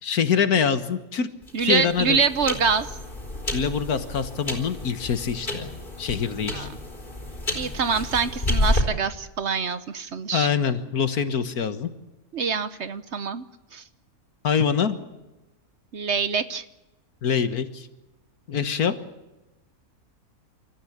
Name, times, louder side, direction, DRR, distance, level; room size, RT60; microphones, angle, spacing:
voice 1, 0.0-1.3 1.6-2.2 3.5-5.7 6.0-6.7 10.3-11.9 14.4-15.0 17.2-17.9 18.5-18.9, left 7 dB, 75° left, 11 dB, 1.9 m, -24 dB
sound 1, 1.4-8.8, left 1 dB, 30° left, 4.1 m, -30 dB
voice 2, 1.5-2.9 6.4-6.7 7.5-10.5 12.3-13.4 13.7-13.8 15.9-16.6, right 5 dB, 55° right, 13 dB, 1.1 m, -25 dB
27.5 x 14.0 x 8.7 m, 1.0 s
omnidirectional pair, 1.6 m